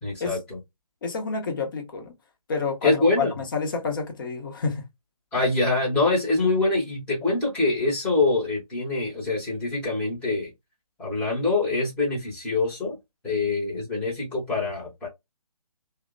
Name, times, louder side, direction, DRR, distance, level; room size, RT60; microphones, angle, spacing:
voice 1, 0.0-0.6 2.8-3.3 5.3-10.5 11.0-13.0 13.2-15.1, left 3 dB, 5° left, 0.8 m, -24 dB
voice 2, 1.0-2.1 2.5-4.8, left 4 dB, 35° left, 0.7 m, -29 dB
2.9 x 2.0 x 2.4 m
figure-of-eight pair, 155°, 19 cm